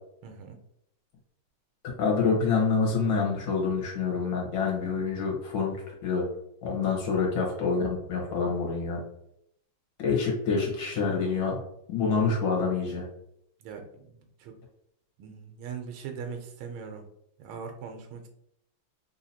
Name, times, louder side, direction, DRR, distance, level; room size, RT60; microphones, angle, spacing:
voice 1, 0.2-0.6 6.9-7.2 13.6-14.6 15.2-17.1 17.4-18.3, right 6 dB, 90° right, 4 dB, 1.5 m, -41 dB
voice 2, 2.0-5.8 6.0-6.2 6.6-9.0 10.0-11.6 11.9-13.1, left 5 dB, 70° left, -1 dB, 1.7 m, -27 dB
3.7 x 2.8 x 2.7 m, 0.75 s
omnidirectional pair, 2.2 m